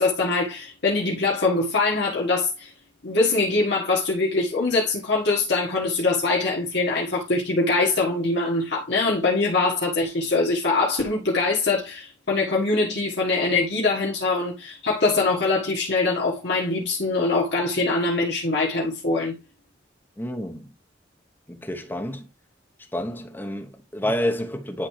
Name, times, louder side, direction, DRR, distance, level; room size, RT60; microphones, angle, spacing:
voice 1, 0.0-2.7 3.0-19.3, left 3 dB, 60° left, 1.6 m, -23 dB
voice 2, 20.2-20.7 21.5-22.2 22.9-24.9, left 1 dB, 10° left, 0.9 m, -29 dB
10.5 x 3.4 x 3.2 m
head